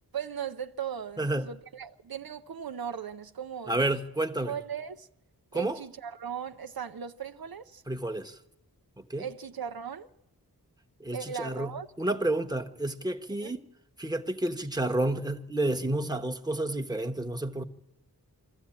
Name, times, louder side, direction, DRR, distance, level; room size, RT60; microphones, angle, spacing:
voice 1, 0.1-3.9 4.5-5.1 5.5-7.8 9.2-10.1 11.1-11.9 13.4-13.5, right 7 dB, 70° right, 0.6 m, -38 dB
voice 2, 1.2-1.5 3.7-4.5 5.5-5.8 7.9-8.4 9.0-9.3 11.0-13.6 14.0-17.6, right 1 dB, 10° right, 1.1 m, -30 dB
24.0 x 14.0 x 8.7 m
wide cardioid pair, 60°, 38 cm